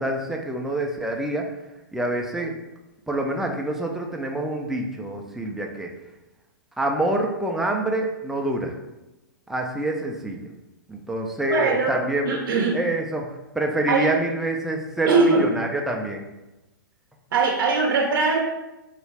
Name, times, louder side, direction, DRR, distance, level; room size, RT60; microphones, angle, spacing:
voice 1, 0.0-1.5 1.9-2.5 3.1-5.9 6.8-8.7 9.5-10.4 10.9-12.3 12.7-16.3, right 1 dB, 5° right, 1 dB, 0.4 m, -26 dB
voice 2, 11.5-12.0 12.3-12.8 13.9-14.1 15.1-15.5 17.3-18.5, right 4 dB, 75° right, 0 dB, 0.6 m, -21 dB
4.0 x 2.3 x 3.3 m, 0.99 s
hypercardioid pair, 130°, 11 cm